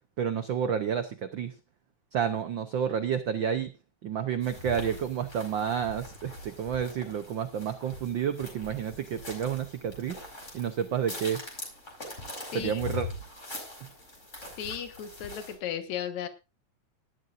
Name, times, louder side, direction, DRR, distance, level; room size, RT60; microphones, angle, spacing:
voice 1, 0.2-1.5 2.1-3.7 4.0-10.2 10.5-11.4 12.5-13.1, right 8 dB, 90° right, 10 dB, 1.0 m, -30 dB
sound 1, 4.4-15.5, left 2 dB, 25° left, 5.1 m, -42 dB
voice 2, 14.6-16.3, left 9 dB, 75° left, 8 dB, 2.8 m, -35 dB
18.5 x 12.0 x 2.6 m, 0.27 s
omnidirectional pair, 3.3 m